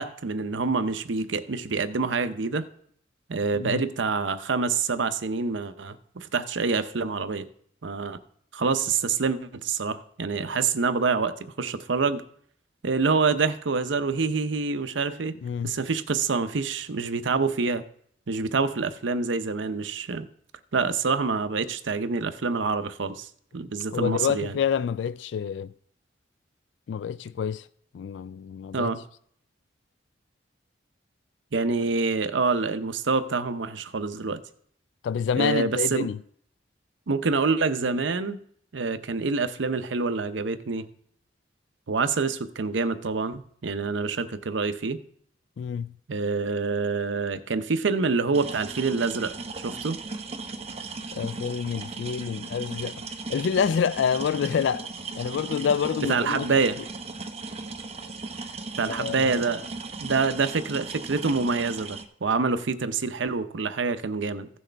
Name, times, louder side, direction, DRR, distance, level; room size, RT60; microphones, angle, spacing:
voice 1, 0.0-2.7 3.3-7.5 7.8-8.2 8.5-12.2 12.8-15.3 15.6-17.8 18.3-20.3 20.7-23.3 23.5-24.6 28.7-29.0 31.5-34.4 35.4-36.1 37.1-38.4 38.7-40.8 41.9-45.0 46.1-49.3 49.6-50.0 56.1-56.8 58.8-59.6 60.0-64.5, right 4 dB, 85° right, 0.7 m, -26 dB
voice 2, 15.4-15.7 23.9-25.7 26.9-27.6 27.9-28.9 35.0-36.2 45.6-45.9 51.1-52.9 53.3-56.5 58.9-59.4, left 7 dB, 75° left, 0.3 m, -27 dB
sound 1, 48.3-62.1, right 3 dB, 35° right, 0.7 m, -37 dB
15.5 x 6.3 x 3.4 m
head